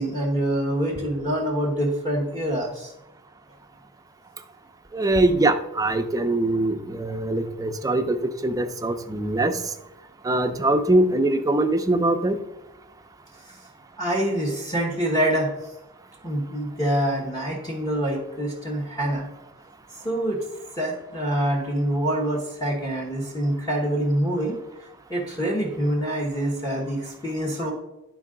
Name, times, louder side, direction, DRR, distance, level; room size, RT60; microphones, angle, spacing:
voice 1, 0.0-2.9 13.4-13.6 14.0-15.5 16.2-19.3 20.0-20.4 20.8-24.6 25.1-27.7, right 1 dB, 15° left, -3 dB, 1.1 m, -25 dB
voice 2, 4.9-9.6 10.2-12.4, right 2 dB, 15° right, 6 dB, 0.5 m, -22 dB
11.0 x 4.6 x 3.7 m, 0.94 s
head